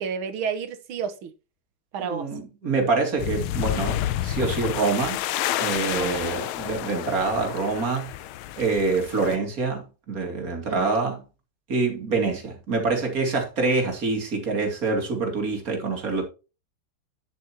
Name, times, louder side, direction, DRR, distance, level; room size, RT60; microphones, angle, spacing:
voice 1, 0.0-1.3 1.9-2.3 5.9-6.2 10.7-10.9, right 6 dB, 75° right, 1.9 m, -31 dB
voice 2, 2.0-5.2 5.6-8.1 8.6-11.2 11.7-16.2, right 3 dB, 40° right, 2.7 m, -26 dB
sound 1, 3.2-9.4, left 13 dB, 80° left, 1.5 m, -30 dB
10.0 x 7.6 x 2.9 m
omnidirectional pair, 2.4 m